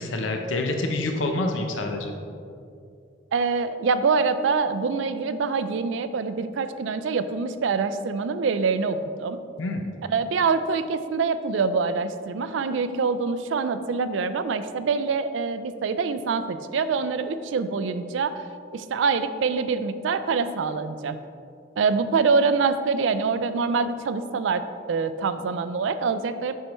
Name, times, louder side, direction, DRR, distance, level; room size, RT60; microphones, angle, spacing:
voice 1, 0.0-2.1 9.6-9.9, left 2 dB, 85° left, 4 dB, 0.6 m, -27 dB
voice 2, 3.3-9.4 10.1-18.4 18.7-21.2 21.8-24.6 24.9-26.6, right 4 dB, 80° right, 11 dB, 0.4 m, -25 dB
7.6 x 5.5 x 3.0 m, 2.5 s
head